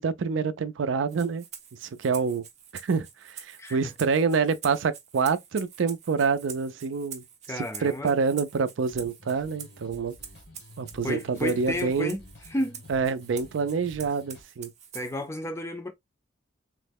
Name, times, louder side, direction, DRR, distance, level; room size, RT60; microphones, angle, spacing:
voice 1, 0.0-1.4 1.7-2.4 2.7-7.2 7.5-10.2 10.8-12.2 12.9-14.7, right 5 dB, 90° right, 0.4 m, -27 dB
Rattle (instrument), 1.1-15.3, right 8 dB, 35° right, 0.6 m, -46 dB
voice 2, 3.6-3.9 7.5-8.1 11.0-12.2 12.5-12.8 14.9-15.9, left 1 dB, 15° left, 0.4 m, -32 dB
sound 1, 8.9-14.4, left 1 dB, 65° left, 1.0 m, -50 dB
3.1 x 2.1 x 3.4 m
head